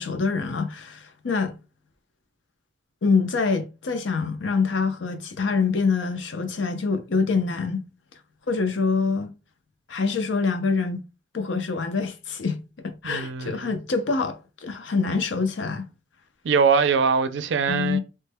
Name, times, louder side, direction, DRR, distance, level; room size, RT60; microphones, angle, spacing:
voice 1, 0.0-1.5 3.0-7.8 8.5-9.3 9.9-11.0 11.3-15.8 17.7-18.0, left 4 dB, 85° left, 0.6 m, -25 dB
voice 2, 13.0-13.7 16.4-18.0, right 5 dB, 75° right, 0.4 m, -22 dB
3.1 x 2.1 x 3.3 m
head